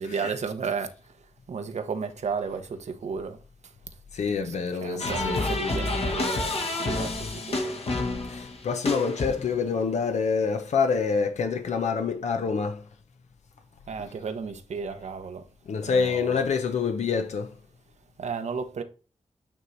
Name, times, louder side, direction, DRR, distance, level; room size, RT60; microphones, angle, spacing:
voice 1, 0.0-3.7 4.4-7.8 13.9-15.5 15.8-16.4 18.2-18.8, right 5 dB, 75° right, 0.9 m, -34 dB
voice 2, 4.1-5.5 8.3-12.9 15.7-17.5, left 5 dB, 80° left, 0.7 m, -26 dB
sound 1, 5.0-9.7, left 2 dB, 60° left, 1.3 m, -29 dB
8.9 x 3.1 x 4.0 m
cardioid pair, 50°, 12 cm